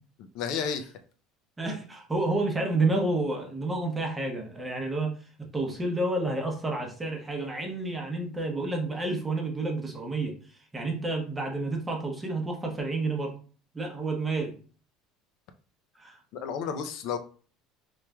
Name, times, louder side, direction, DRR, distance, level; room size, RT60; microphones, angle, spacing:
voice 1, 0.3-0.9 16.3-17.2, left 6 dB, 55° left, 7 dB, 0.4 m, -31 dB
voice 2, 1.6-5.1 5.4-10.3 10.7-13.3 13.7-14.5 16.0-16.2, right 2 dB, 10° right, 2 dB, 0.8 m, -30 dB
4.8 x 3.0 x 2.2 m, 0.40 s
cardioid pair, 165°, 0 cm